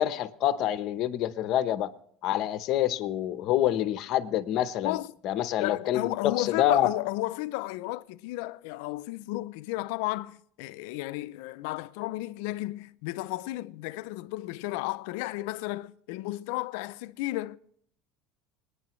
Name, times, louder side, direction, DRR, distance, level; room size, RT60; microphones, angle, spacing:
voice 1, 0.0-1.9 2.2-5.0 5.2-6.9, left 12 dB, 45° left, 0.8 m, -27 dB
voice 2, 5.6-17.6, left 18 dB, 75° left, 0.4 m, -33 dB
26.5 x 9.8 x 3.1 m
cardioid pair, 160°, 0 cm